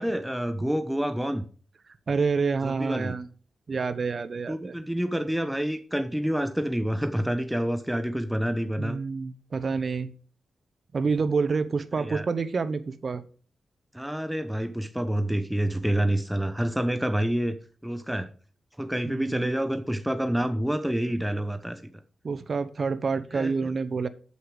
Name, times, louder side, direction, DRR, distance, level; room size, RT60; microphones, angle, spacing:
voice 1, 0.0-1.5 2.6-3.2 4.5-9.0 12.0-12.3 13.9-17.6 17.8-18.3 18.8-21.9 23.3-23.5, right 1 dB, 5° right, 9 dB, 0.8 m, -28 dB
voice 2, 2.1-3.3 3.7-4.7 8.8-10.1 10.9-13.2 19.0-19.5 22.2-24.1, right 4 dB, 50° right, 13 dB, 0.9 m, -28 dB
8.3 x 7.9 x 4.8 m, 0.41 s
cardioid pair, 65°, 0 cm